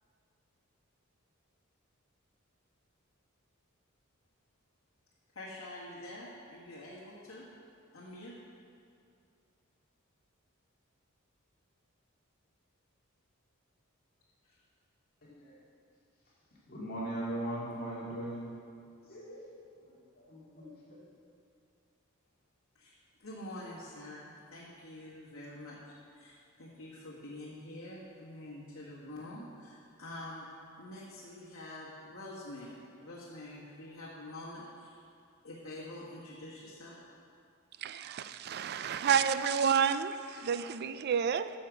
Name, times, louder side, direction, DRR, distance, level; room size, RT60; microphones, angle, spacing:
voice 1, 5.3-7.5 7.9-8.4 14.4-14.6 22.7-22.9 23.2-30.4 30.8-35.0 35.4-37.0, left 1 dB, 70° left, -9 dB, 1.6 m, -46 dB
voice 2, 15.2-15.6 16.7-18.5 19.0-21.0, right 1 dB, 45° left, -6 dB, 2.2 m, -40 dB
voice 3, 37.8-41.5, right 7 dB, 50° right, 13 dB, 0.4 m, -30 dB
9.7 x 6.6 x 6.2 m, 2.4 s
head